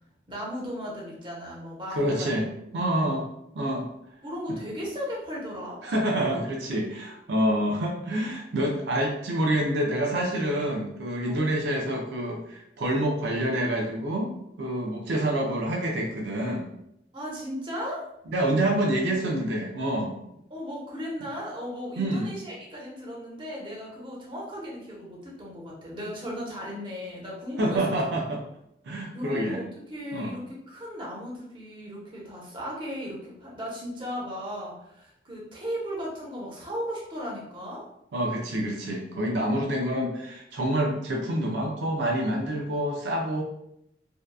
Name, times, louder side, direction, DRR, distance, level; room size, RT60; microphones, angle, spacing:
voice 1, 0.3-2.5 2.7-3.2 4.2-5.8 11.3-11.6 14.8-15.0 17.1-18.0 20.5-28.0 29.1-37.8, equal, 30° right, -4 dB, 0.8 m, -36 dB
voice 2, 1.9-2.5 2.7-3.2 3.6-3.9 5.8-14.3 14.6-16.7 18.3-20.2 22.0-22.3 27.6-28.4 28.8-29.6 30.1-30.3 38.1-43.4, right 1 dB, 80° right, 0 dB, 0.4 m, -27 dB
2.6 x 2.3 x 2.2 m, 0.78 s
head